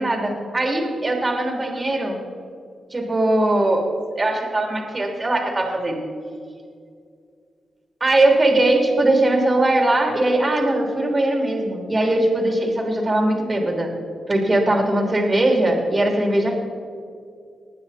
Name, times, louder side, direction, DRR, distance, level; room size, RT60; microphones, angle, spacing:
voice 1, 0.0-2.2 2.9-3.8 4.2-6.0 8.0-13.9 14.3-16.5, right 1 dB, 35° right, 1 dB, 3.0 m, -20 dB
20.5 x 9.2 x 4.2 m, 2.3 s
cardioid pair, 55°, 0 cm